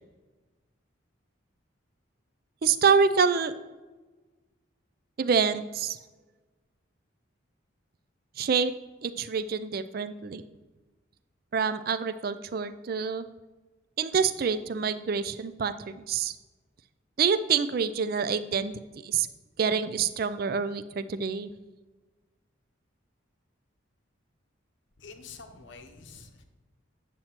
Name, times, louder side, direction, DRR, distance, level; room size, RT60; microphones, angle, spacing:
voice 1, 2.6-3.5 5.2-6.0 8.4-8.7 9.0-10.4 11.5-13.3 14.0-16.4 17.2-19.3 19.6-21.5, right 6 dB, 45° right, 13 dB, 0.4 m, -27 dB
voice 2, 25.0-26.4, left 4 dB, 65° left, 6 dB, 0.8 m, -47 dB
8.9 x 7.7 x 2.9 m, 1.2 s
head